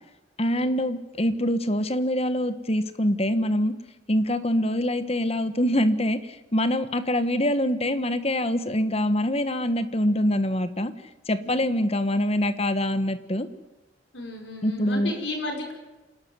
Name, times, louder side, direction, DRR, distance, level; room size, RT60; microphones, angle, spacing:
voice 1, 0.4-3.7 4.1-10.9 11.3-13.5 14.6-15.1, left 1 dB, 30° left, 11 dB, 1.3 m, -24 dB
voice 2, 11.4-11.9 14.1-15.7, left 2 dB, 70° left, 3 dB, 5.6 m, -34 dB
27.5 x 13.0 x 9.6 m, 1.1 s
head